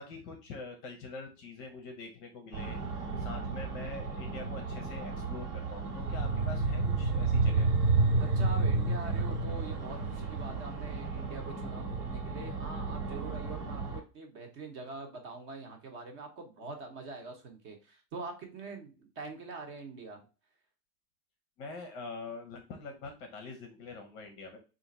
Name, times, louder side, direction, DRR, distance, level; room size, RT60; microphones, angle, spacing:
voice 1, 0.0-7.7 12.3-12.4 21.6-24.6, left 3 dB, 30° left, 4 dB, 0.7 m, -44 dB
sound 1, 2.5-14.0, right 3 dB, 75° right, 1.8 m, -31 dB
voice 2, 8.2-20.3, right 3 dB, 35° right, 3 dB, 1.0 m, -44 dB
3.6 x 2.6 x 4.0 m, 0.33 s
supercardioid pair, 155°, 47 cm